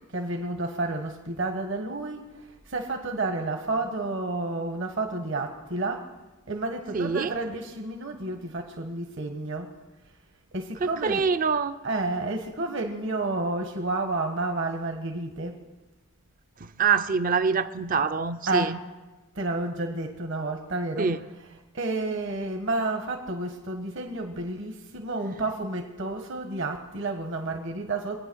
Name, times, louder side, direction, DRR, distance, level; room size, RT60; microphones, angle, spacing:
voice 1, 0.1-6.1 6.5-9.7 10.5-11.2 11.8-15.6 18.5-18.9 19.3-28.3, right 2 dB, 60° right, 4 dB, 1.4 m, -30 dB
voice 2, 6.9-7.3 11.0-11.8 16.6-18.8 21.0-21.2, right 5 dB, 40° right, 11 dB, 0.5 m, -25 dB
23.5 x 9.3 x 6.3 m, 1.1 s
head